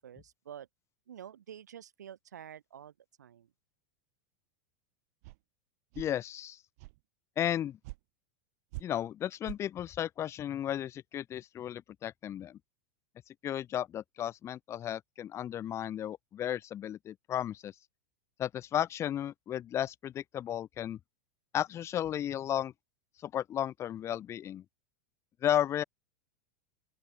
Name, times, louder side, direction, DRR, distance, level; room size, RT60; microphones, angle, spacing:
voice 1, 0.0-0.7 1.1-2.9 3.2-3.5, right 9 dB, 85° right, 7.2 m, -48 dB
sound 1, 5.2-5.4 5.9-6.1 6.8-7.0 7.8-8.0 8.7-8.8 9.4-9.6, right 24 dB, 60° right, 3.9 m, -43 dB
voice 2, 6.0-6.6 7.4-7.8 8.8-12.6 13.4-17.7 18.4-21.0 21.5-22.7 23.2-24.6 25.4-25.8, left 11 dB, 30° left, 1.0 m, -34 dB
open air
hypercardioid pair, 110°, 9 cm